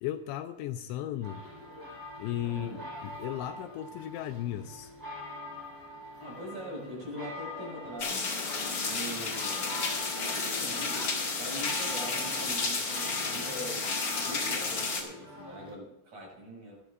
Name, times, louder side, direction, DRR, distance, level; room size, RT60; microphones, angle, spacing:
voice 1, 0.0-1.5 2.2-2.7 3.0-4.9, left 12 dB, 80° left, 8 dB, 2.8 m, -35 dB
sound 1, 1.2-15.7, left 1 dB, 5° right, 3.2 m, -44 dB
voice 2, 2.5-2.9 6.2-8.4 8.8-9.8 10.2-13.9 14.1-16.8, equal, 40° right, -2 dB, 7.2 m, -42 dB
sound 2, 8.0-15.0, left 4 dB, 35° left, 2.2 m, -32 dB
20.0 x 13.5 x 2.5 m, 0.79 s
omnidirectional pair, 5.4 m